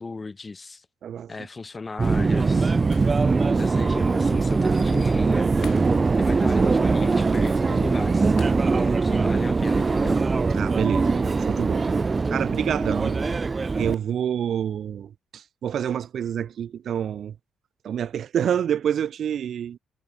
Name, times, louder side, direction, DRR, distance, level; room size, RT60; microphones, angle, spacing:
voice 1, 0.0-0.9 1.3-2.8 3.6-5.5 6.2-8.4 8.7-10.2, left 3 dB, 25° left, 7.1 m, -36 dB
Subway metro underground, 2.0-13.9, right 4 dB, 30° right, 0.5 m, -22 dB
Shatter, 2.9-3.6 4.0-4.1 5.6-6.4 6.7-6.9 8.4-9.1 9.4-9.6, left 9 dB, 65° left, 4.9 m, -48 dB
voice 2, 10.5-11.9 12.3-13.2 13.7-17.3 17.8-19.8, right 9 dB, 60° right, 1.1 m, -28 dB
cardioid pair, 90°, 0 cm